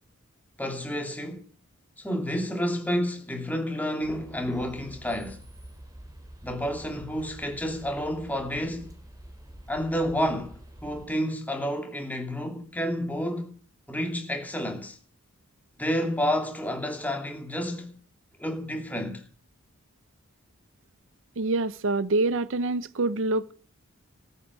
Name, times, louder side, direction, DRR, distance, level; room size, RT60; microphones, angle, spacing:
voice 1, 0.6-1.5 2.0-5.4 6.4-8.9 9.7-13.5 13.9-15.0 15.8-17.9 18.4-19.2, equal, 10° left, 2.7 m, -30 dB
sound 1, 4.0-11.1, right 1 dB, 15° right, 3.7 m, -47 dB
voice 2, 21.4-23.5, right 2 dB, 65° right, 0.7 m, -26 dB
14.0 x 8.3 x 9.4 m
head